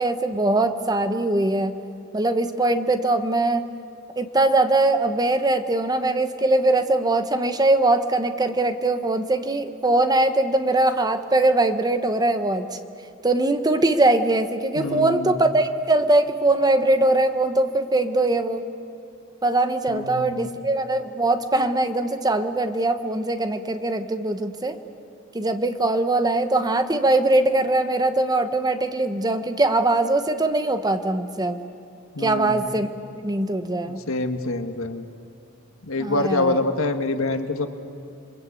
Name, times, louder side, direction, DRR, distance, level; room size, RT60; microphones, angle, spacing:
voice 1, 0.0-1.8 2.1-3.6 4.2-12.7 13.2-18.6 19.4-24.8 25.3-31.6 32.2-32.9 33.2-34.0 36.0-36.6, right 2 dB, 20° right, 9 dB, 1.1 m, -21 dB
voice 2, 14.8-15.3 19.9-20.5 32.2-32.6 34.1-35.0 35.9-37.7, left 2 dB, 80° left, 7 dB, 1.6 m, -25 dB
28.5 x 22.5 x 8.5 m, 2.5 s
head